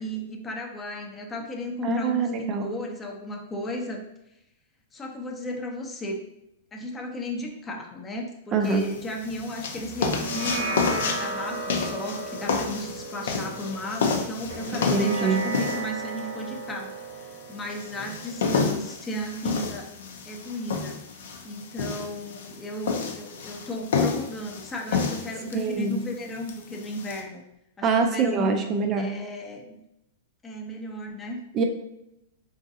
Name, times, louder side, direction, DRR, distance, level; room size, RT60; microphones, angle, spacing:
voice 1, 0.0-4.0 4.9-6.2 6.7-19.9 20.2-21.0 21.4-27.4 27.8-28.5 29.0-29.8 30.4-31.4, left 1 dB, 20° left, 1 dB, 0.5 m, -35 dB
voice 2, 1.8-2.7 8.5-8.8 14.7-15.4 25.5-26.0 27.8-29.1 31.5-31.6, right 4 dB, 30° right, 4 dB, 0.3 m, -24 dB
sound 1, 8.6-27.2, left 5 dB, 80° left, 0.5 m, -30 dB
sound 2, 10.0-18.7, right 2 dB, 80° right, 0.9 m, -34 dB
3.8 x 2.5 x 2.6 m, 0.84 s
hypercardioid pair, 125°, 0 cm